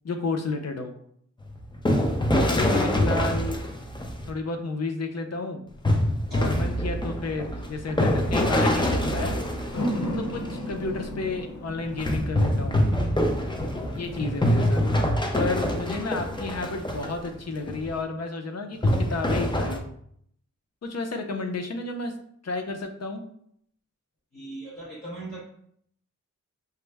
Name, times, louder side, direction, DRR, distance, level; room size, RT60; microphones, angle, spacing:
voice 1, 0.0-0.9 2.3-3.6 4.3-5.6 6.3-9.3 10.2-12.8 13.9-14.8 15.3-19.9 20.8-22.1 22.4-23.2, left 3 dB, 55° left, 5 dB, 0.6 m, -31 dB
sound 1, 1.4-4.3 5.8-10.5 12.0-17.3 17.7-17.9 18.8-19.8, left 1 dB, 15° left, 0.5 m, -25 dB
sound 2, 7.5-14.9, equal, 75° left, 0.9 m, -36 dB
voice 2, 24.3-25.4, right 2 dB, 30° left, -7 dB, 1.0 m, -39 dB
5.6 x 2.0 x 3.3 m, 0.67 s
wide cardioid pair, 85°, 31 cm